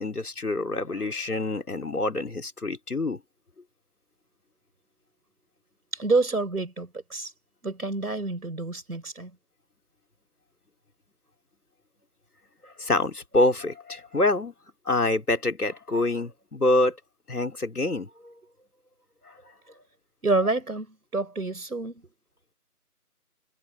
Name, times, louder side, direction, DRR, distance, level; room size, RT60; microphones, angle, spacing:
voice 1, 0.0-3.2 12.6-14.5 14.9-17.0 17.3-18.3 19.2-19.3, left 2 dB, 75° left, 3.4 m, -26 dB
voice 2, 5.9-7.3 7.6-9.3 20.2-22.1, right 3 dB, 70° right, 5.2 m, -28 dB
figure-of-eight pair, 165°, 46 cm